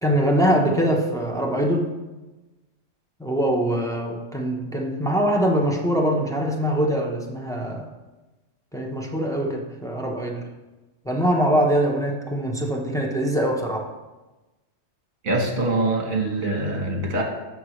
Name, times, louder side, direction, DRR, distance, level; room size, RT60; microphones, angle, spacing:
voice 1, 0.0-1.9 3.2-7.9 8.7-10.4 11.0-13.9, equal, 5° left, -1 dB, 0.8 m, -23 dB
voice 2, 15.2-17.2, right 2 dB, 40° right, 2 dB, 1.4 m, -24 dB
14.0 x 5.5 x 3.2 m, 1.1 s
omnidirectional pair, 1.3 m